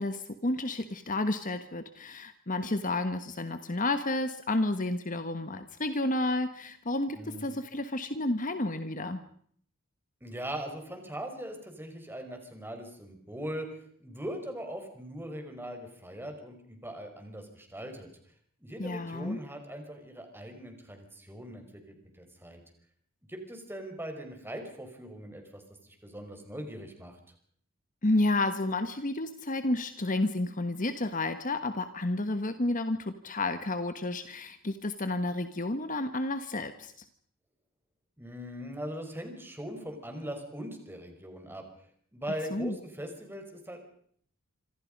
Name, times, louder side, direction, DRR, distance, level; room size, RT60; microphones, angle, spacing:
voice 1, 0.0-9.2 18.8-19.4 28.0-36.9 42.5-42.7, left 2 dB, 35° left, 10 dB, 1.3 m, -31 dB
voice 2, 7.1-7.5 10.2-18.1 18.6-22.6 23.3-27.2 38.2-41.6 42.1-43.8, equal, 10° right, 5 dB, 5.3 m, -40 dB
27.0 x 26.5 x 5.4 m, 0.62 s
head